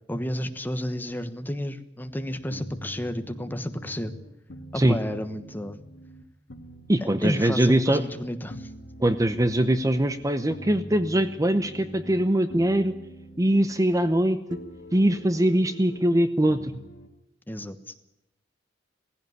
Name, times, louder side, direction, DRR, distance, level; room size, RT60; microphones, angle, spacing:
voice 1, 0.1-4.1 4.7-5.8 7.2-8.7 17.5-17.8, equal, 10° left, 9 dB, 1.3 m, -31 dB
sound 1, 2.5-6.2 6.5-8.2 8.5-12.2 12.5-14.2 14.5-16.0 16.5-17.1, equal, 70° left, 2.2 m, -44 dB
voice 2, 6.9-8.0 9.0-12.9 13.4-14.4 14.9-16.7, right 1 dB, 20° right, 11 dB, 0.8 m, -22 dB
18.5 x 16.0 x 9.5 m, 0.87 s
head